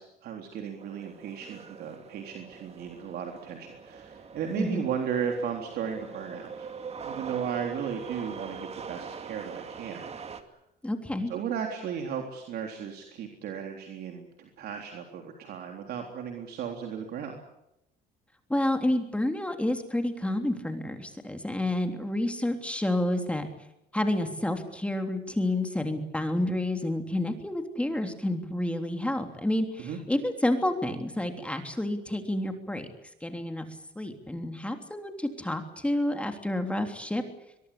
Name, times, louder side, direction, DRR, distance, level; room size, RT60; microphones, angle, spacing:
voice 1, 0.0-6.7 7.0-10.0 11.3-17.4 29.8-30.0, right 7 dB, 70° right, 2 dB, 3.6 m, -35 dB
sound 1, 0.8-10.4, right 6 dB, 40° right, 2.5 m, -42 dB
voice 2, 10.8-11.3 18.5-23.5 23.9-32.9 33.2-33.6 33.9-37.2, left 1 dB, 5° left, 5 dB, 3.3 m, -29 dB
23.0 x 23.0 x 8.6 m, 0.84 s
cardioid pair, 110°, 17 cm